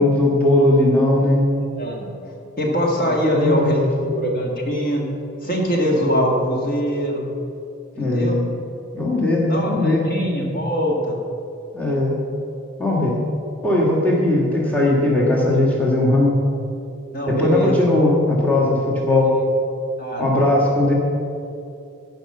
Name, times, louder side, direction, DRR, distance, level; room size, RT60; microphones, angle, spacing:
voice 1, 0.0-1.4 3.3-3.7 8.0-8.4 8.9-10.0 11.7-12.2 12.8-13.2 13.6-16.3 17.3-19.3 20.2-20.9, left 1 dB, 10° left, -4 dB, 1.6 m, -18 dB
voice 2, 1.8-2.1 2.6-5.0 5.4-7.3 7.9-8.4 9.4-11.2 17.1-17.7 20.0-20.5, equal, 45° left, -1 dB, 1.7 m, -22 dB
15.0 x 5.4 x 6.6 m, 2.6 s
head